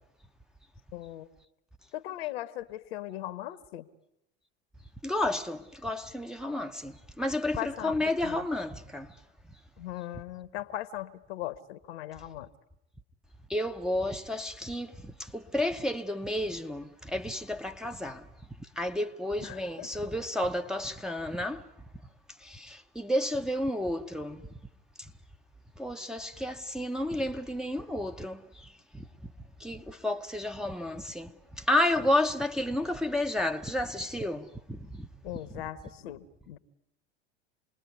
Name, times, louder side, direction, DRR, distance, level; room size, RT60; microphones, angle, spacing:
voice 1, 0.9-1.3 1.9-3.9 7.5-7.9 8.2-8.4 9.8-12.5 19.4-19.9 35.2-36.6, left 14 dB, 65° left, 1.2 m, -39 dB
voice 2, 5.0-9.1 13.5-18.2 18.8-21.6 22.4-24.4 25.8-29.0 29.6-35.1, left 1 dB, ahead, 1.0 m, -31 dB
27.5 x 20.5 x 9.5 m
figure-of-eight pair, 75°, 33 cm